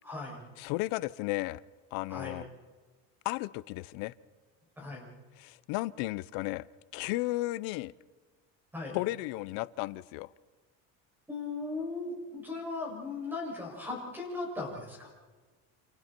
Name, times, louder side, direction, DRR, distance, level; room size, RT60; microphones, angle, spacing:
voice 1, 0.0-0.4 2.1-2.3 4.8-5.1 8.7-9.0 11.3-15.1, left 3 dB, 5° right, -2 dB, 6.9 m, -38 dB
voice 2, 0.6-1.6 1.9-2.5 3.2-4.1 5.4-6.7 6.9-7.9 8.9-10.3, left 20 dB, 80° left, 17 dB, 0.7 m, -34 dB
28.5 x 28.0 x 4.5 m, 1.4 s
cardioid pair, 175°, 33 cm